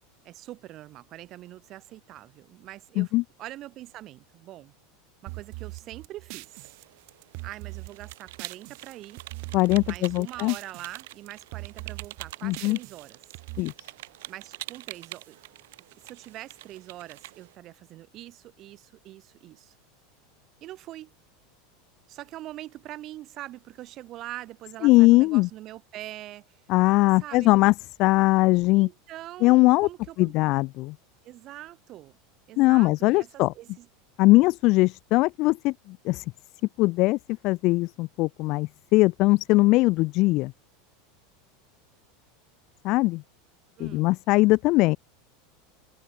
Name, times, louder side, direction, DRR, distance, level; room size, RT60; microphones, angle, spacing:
voice 1, 0.2-3.1 3.4-4.7 5.2-6.7 7.4-9.2 9.8-13.2 14.3-15.4 15.9-19.7 20.6-21.1 22.1-26.6 27.2-27.6 28.7-30.3 31.2-32.2 32.5-33.9 43.8-44.1, right 15 dB, 40° right, 3.3 m, -43 dB
sound 1, 5.3-8.9 9.2-11.0 11.3-13.6, right 40 dB or more, 55° right, 1.7 m, -41 dB
sound 2, 6.5-17.6, right 17 dB, 75° right, 2.1 m, -45 dB
voice 2, 9.5-10.5 12.4-12.8 13.6-13.7 24.8-25.5 26.7-27.7 28.0-28.9 29.4-29.9 30.2-30.9 32.6-33.5 34.2-36.2 36.8-37.2 37.4-40.5 42.8-43.2 43.8-45.0, left 21 dB, 50° left, 0.6 m, -20 dB
supercardioid pair, 140°, 0 cm